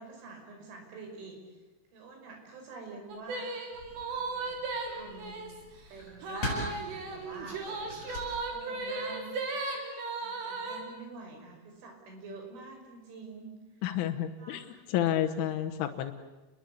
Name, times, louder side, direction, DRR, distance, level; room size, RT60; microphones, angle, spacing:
voice 1, 0.0-1.4 1.9-3.6 4.1-4.6 4.9-5.5 5.9-8.0 8.4-9.3 10.2-13.5 14.4-14.8, right 3 dB, 85° right, 2 dB, 8.0 m, -47 dB
sound 1, 3.1-5.6 6.2-10.8, right 3 dB, 65° right, 5.6 m, -36 dB
sound 2, 3.7-9.1, left 1 dB, 35° left, 8.8 m, -42 dB
voice 2, 13.8-14.6 14.9-16.1, left 11 dB, 85° left, 4 dB, 3.7 m, -30 dB
30.0 x 21.5 x 8.5 m, 1.1 s
omnidirectional pair, 5.4 m